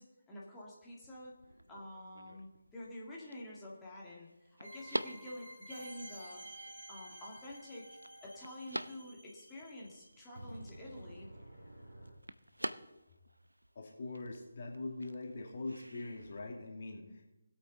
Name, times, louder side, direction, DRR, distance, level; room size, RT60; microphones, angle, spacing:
voice 1, 0.0-1.3 1.7-6.4 6.9-11.3, left 1 dB, 10° left, -6 dB, 2.1 m, -49 dB
sound 1, 0.9-16.4, right 1 dB, 80° right, 0.7 m, -48 dB
sound 2, 4.6-12.1, right 1 dB, 65° right, 4.9 m, -52 dB
voice 2, 13.7-17.2, left 2 dB, 40° left, 1 dB, 2.2 m, -43 dB
19.5 x 8.5 x 3.9 m, 0.97 s
figure-of-eight pair, 150°, 0 cm